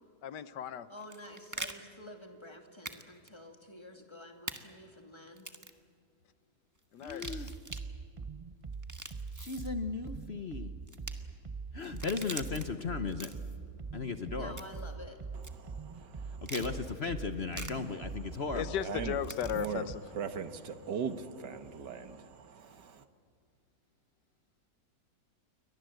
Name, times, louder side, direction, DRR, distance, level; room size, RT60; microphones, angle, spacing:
voice 1, 0.2-0.9 6.9-7.5 18.5-20.0, left 9 dB, 85° left, 1.5 m, -36 dB
voice 2, 0.9-5.5 14.3-15.2, left 1 dB, 15° left, 2.6 m, -49 dB
sound 1, 1.0-1.7 2.8-3.0 3.3-3.4 4.5-4.6 5.4-5.8 7.0-7.8 8.7-9.7 10.9-11.1 11.8-12.6 13.1-13.6 14.6-14.9 15.4-15.5 16.4-16.7 17.5-17.7 19.2-19.7, right 2 dB, 10° right, 1.2 m, -43 dB
voice 3, 7.0-7.5 9.3-10.7 11.7-13.3 13.9-14.5 16.3-18.8, left 5 dB, 45° left, 1.1 m, -36 dB
sound 2, 7.1-20.0, right 5 dB, 50° right, 0.3 m, -43 dB
voice 4, 15.3-16.5 18.8-19.2 19.5-19.9 20.1-23.0, right 6 dB, 90° right, 2.0 m, -40 dB
29.0 x 23.5 x 7.9 m
omnidirectional pair, 1.8 m